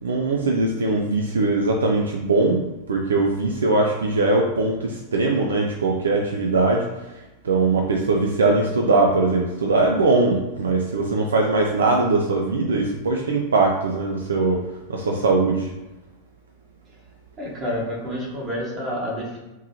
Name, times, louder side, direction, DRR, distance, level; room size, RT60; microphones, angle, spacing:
voice 1, 0.0-2.6 2.9-7.1 7.4-14.6 14.9-15.7, right 3 dB, 70° right, 1 dB, 0.4 m, -21 dB
voice 2, 17.4-19.4, equal, 30° right, -4 dB, 1.4 m, -29 dB
3.6 x 3.1 x 2.8 m, 1.0 s
figure-of-eight pair, 90°, 0 cm